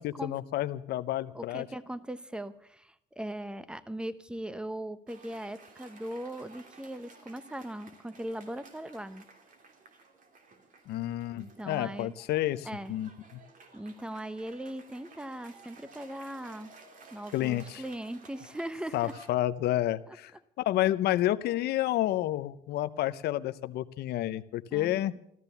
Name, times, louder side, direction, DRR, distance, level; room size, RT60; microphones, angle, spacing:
voice 1, 0.0-1.7 10.9-13.1 17.3-17.8 18.9-20.3 20.7-25.1, left 14 dB, 70° left, 13 dB, 0.6 m, -30 dB
voice 2, 1.3-9.2 11.4-12.1 12.6-12.9 13.7-16.7 17.1-19.1 20.1-20.2 24.7-25.0, right 1 dB, 5° right, 15 dB, 0.8 m, -39 dB
Cheering / Applause, 5.1-19.3, right 4 dB, 50° right, 2.9 m, -55 dB
14.0 x 13.5 x 6.9 m, 0.71 s
cardioid pair, 110°, 17 cm